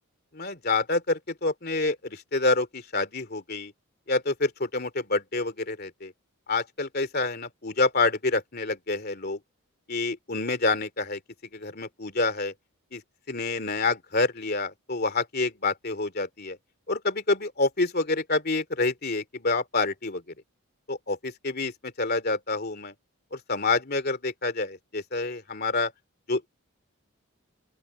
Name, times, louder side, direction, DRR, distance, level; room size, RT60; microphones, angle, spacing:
voice 1, 0.3-3.7 4.1-6.1 6.5-9.4 9.9-11.2 11.5-12.5 12.9-13.0 13.3-16.6 16.9-20.2 20.9-22.9 23.3-25.9 26.3-26.5, left 3 dB, 45° left, 3.0 m, -27 dB
open air
head